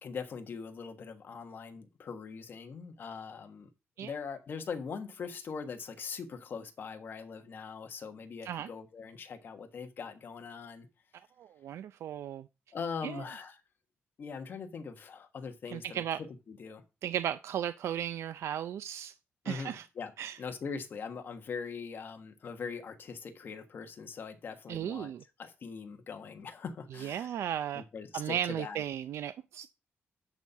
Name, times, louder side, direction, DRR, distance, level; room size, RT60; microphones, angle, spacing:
voice 1, 0.0-3.7 4.0-10.9 12.7-13.6 14.2-16.8 19.4-20.1 20.4-25.1 25.4-27.3 27.7-28.8, left 5 dB, 45° left, 1.3 m, -41 dB
voice 2, 11.4-12.5 13.0-13.2 15.7-16.2 17.0-19.1 19.4-19.9 20.2-20.4 24.7-25.2 27.0-27.8 28.1-29.7, right 10 dB, 75° right, 0.4 m, -35 dB
10.5 x 4.4 x 5.5 m
wide cardioid pair, 160°, 5 cm